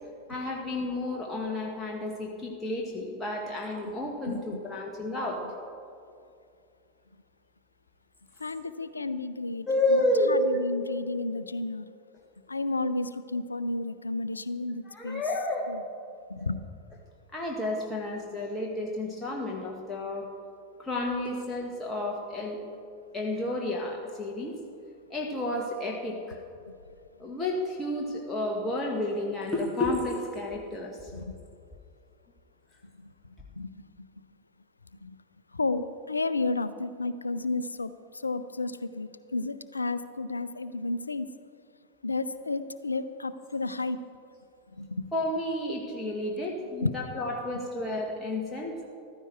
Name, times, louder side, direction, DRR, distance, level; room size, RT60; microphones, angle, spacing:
voice 1, 0.3-5.4 9.7-10.5 14.8-15.7 17.3-20.3 20.8-22.6 23.1-24.5 25.1-26.4 27.2-31.1 45.1-48.7, left 1 dB, 15° left, -1 dB, 1.5 m, -31 dB
voice 2, 8.4-9.7 9.9-11.9 12.5-15.2 15.7-15.8 16.3-16.6 31.1-31.3 33.6-33.7 35.0-35.2 35.5-37.9 38.2-41.3 42.0-44.0 44.8-45.1 46.8-46.9, left 3 dB, 80° left, 14 dB, 0.5 m, -32 dB
14.5 x 13.5 x 4.5 m, 2.4 s
figure-of-eight pair, 90°, 0 cm